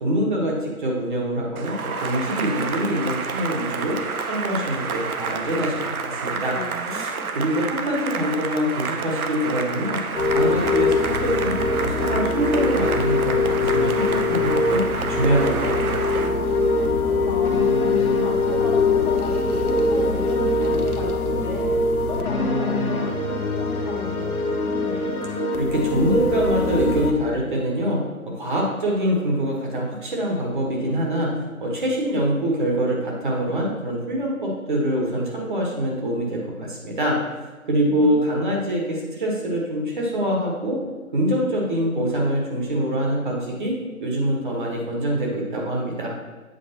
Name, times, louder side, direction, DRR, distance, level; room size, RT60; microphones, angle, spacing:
voice 1, 0.0-4.0 4.3-6.5 6.9-10.0 10.3-14.8 15.1-16.0 25.5-31.3 31.6-37.2 37.7-40.8 41.1-43.7 44.0-46.1, equal, 35° right, -2 dB, 1.1 m, -24 dB
Cheering / Applause, 1.6-16.4, right 5 dB, 80° right, 0.7 m, -29 dB
voice 2, 6.5-7.3 17.0-21.7 22.0-25.1 37.8-38.4, left 2 dB, 35° left, -4 dB, 1.4 m, -34 dB
sound 1, 10.1-27.1, left 3 dB, 85° left, 1.0 m, -22 dB
7.8 x 4.8 x 2.8 m, 1.2 s
figure-of-eight pair, 155°, 43 cm